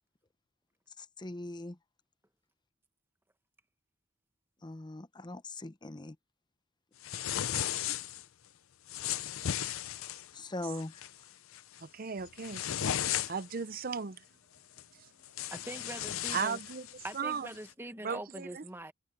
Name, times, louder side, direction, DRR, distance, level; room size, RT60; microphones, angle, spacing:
voice 1, 1.0-1.8 4.6-6.2 10.3-11.0, left 2 dB, 20° left, 0.7 m, -41 dB
sound 1, 7.0-8.2 8.9-10.3 10.8-11.1 11.5-11.8 12.2-13.6 14.8-14.9 15.2-17.2, left 10 dB, 75° left, 0.6 m, -35 dB
voice 2, 11.8-12.6 13.0-14.2 16.3-16.9 17.1-17.5 18.0-18.6, right 6 dB, 45° right, 0.6 m, -36 dB
voice 3, 15.5-16.6 17.0-18.9, right 1 dB, 10° right, 1.1 m, -43 dB
head